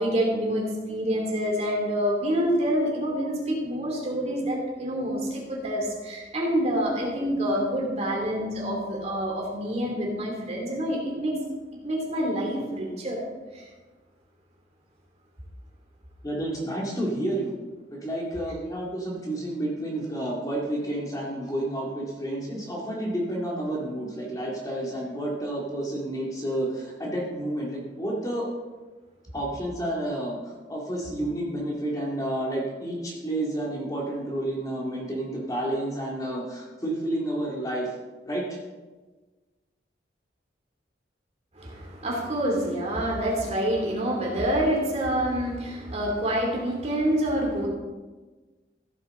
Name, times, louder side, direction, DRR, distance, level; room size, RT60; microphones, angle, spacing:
voice 1, 0.0-11.4 11.8-13.2 13.5-13.7 41.5-47.7, equal, 35° right, -2 dB, 2.9 m, -27 dB
voice 2, 16.2-17.5 17.9-28.5 29.3-37.9 38.3-38.6, right 1 dB, 20° left, -3 dB, 2.3 m, -30 dB
15.0 x 9.1 x 3.8 m, 1.3 s
head